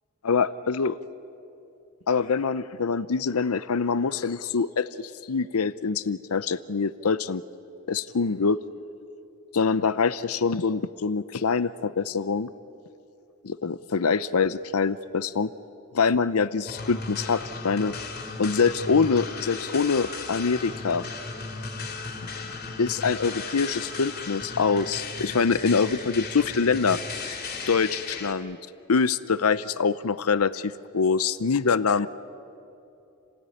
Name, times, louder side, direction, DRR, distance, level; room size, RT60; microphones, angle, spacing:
voice 1, 0.2-1.0 2.1-7.4 7.9-8.6 9.5-12.5 13.4-15.5 15.9-17.9 18.4-21.1 22.2-22.3 22.8-27.0 27.7-28.6 28.9-32.1, left 5 dB, 90° left, 15 dB, 0.7 m, -24 dB
sound 1, 16.7-28.3, left 4 dB, 45° left, 2.9 m, -36 dB
29.5 x 18.0 x 9.9 m, 2.7 s
head